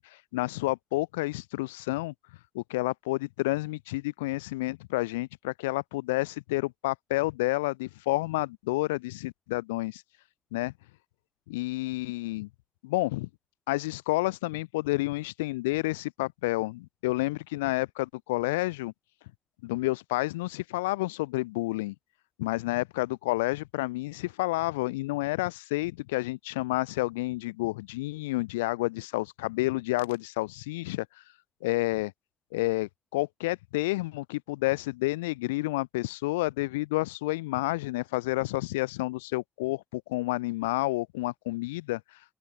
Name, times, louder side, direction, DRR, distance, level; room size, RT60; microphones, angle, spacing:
voice 1, 0.3-2.1 2.5-10.0 10.5-10.7 11.5-12.5 12.8-13.3 13.7-18.9 19.6-21.9 22.4-31.1 31.6-32.1 32.5-42.0, left 20 dB, 90° left, 4.4 m, -30 dB
open air
hypercardioid pair, 40°, 0 cm